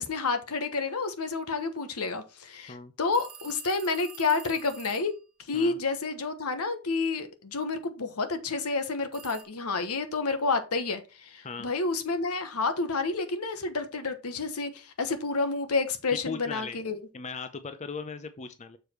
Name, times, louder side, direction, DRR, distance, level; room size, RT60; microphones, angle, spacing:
voice 1, 0.0-5.1 5.5-17.0, left 3 dB, 80° left, 9 dB, 1.1 m, -29 dB
sound 1, 3.1-5.2 9.1-9.4, right 8 dB, 75° right, 1.3 m, -47 dB
voice 2, 16.1-16.8 17.1-18.8, left 5 dB, 30° left, 10 dB, 0.5 m, -38 dB
6.7 x 4.9 x 4.4 m, 0.30 s
head